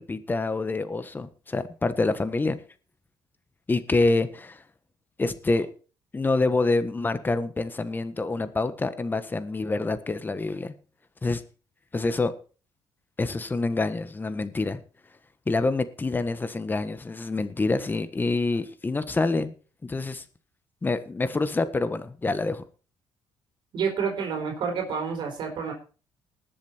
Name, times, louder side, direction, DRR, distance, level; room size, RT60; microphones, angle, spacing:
voice 1, 0.0-2.6 3.7-4.6 5.2-5.7 6.1-10.7 11.2-11.4 11.9-12.3 13.2-14.8 15.5-19.5 19.8-20.2 20.8-22.6, left 3 dB, 20° left, 1.5 m, -26 dB
voice 2, 23.7-25.7, right 6 dB, 65° right, 4.7 m, -29 dB
20.0 x 7.3 x 4.5 m
cardioid pair, 95°, 9 cm